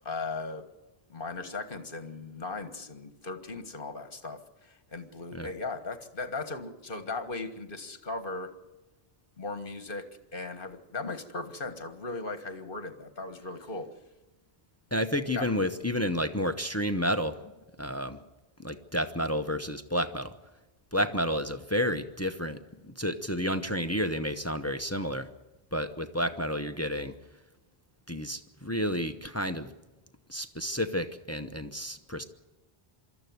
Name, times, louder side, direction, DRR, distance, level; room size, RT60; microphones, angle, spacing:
voice 1, 0.1-0.7 1.1-8.5 9.4-13.9 15.3-15.5 21.0-21.1, left 3 dB, 60° left, 9 dB, 1.8 m, -37 dB
voice 2, 14.9-17.4 17.8-18.2 18.6-20.3 20.9-25.3 25.7-27.1 28.1-29.7 30.3-32.2, equal, 15° left, 9 dB, 0.8 m, -30 dB
24.0 x 13.5 x 9.4 m, 1.1 s
omnidirectional pair, 1.0 m